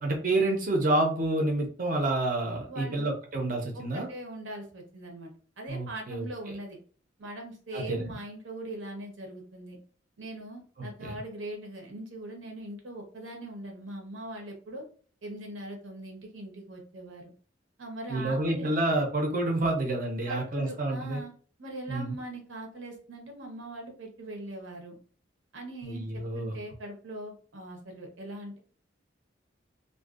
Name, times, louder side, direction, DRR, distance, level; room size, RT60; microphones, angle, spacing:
voice 1, 0.0-4.1 5.7-6.3 7.7-8.2 11.0-11.2 18.1-21.2 21.9-22.2 25.8-26.5, right 2 dB, 45° right, 1 dB, 0.6 m, -28 dB
voice 2, 2.7-3.1 3.9-6.8 7.2-9.8 10.2-14.8 15.2-17.2 17.8-18.7 20.2-21.3 21.6-25.0 25.5-28.6, right 1 dB, 85° right, 2 dB, 0.8 m, -41 dB
2.5 x 2.2 x 2.4 m, 0.42 s
head